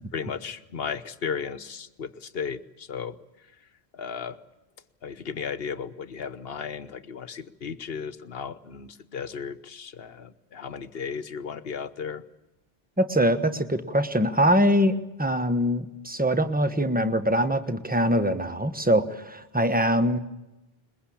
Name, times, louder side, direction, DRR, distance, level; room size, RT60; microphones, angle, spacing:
voice 1, 0.1-3.2 3.9-4.4 5.0-12.2, left 6 dB, 70° left, 14 dB, 1.2 m, -35 dB
voice 2, 13.0-20.2, equal, 10° right, 10 dB, 1.2 m, -23 dB
22.0 x 21.5 x 8.7 m, 0.98 s
omnidirectional pair, 1.0 m